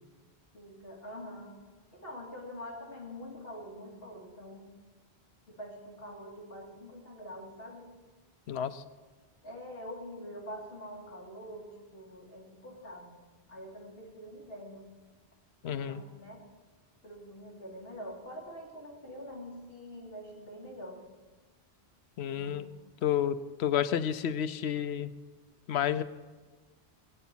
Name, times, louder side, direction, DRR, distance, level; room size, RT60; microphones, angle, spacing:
voice 1, 0.5-1.6 1.9-4.8 5.5-7.9 9.4-13.2 13.5-14.9 15.6-16.4 17.0-21.0 22.3-22.7, equal, 65° left, -2 dB, 2.5 m, -45 dB
voice 2, 8.5-8.8 15.6-16.0 22.2-22.7 23.0-25.1 25.7-26.0, left 9 dB, 90° left, 13 dB, 0.9 m, -30 dB
19.5 x 9.4 x 4.5 m, 1.3 s
omnidirectional pair, 1.1 m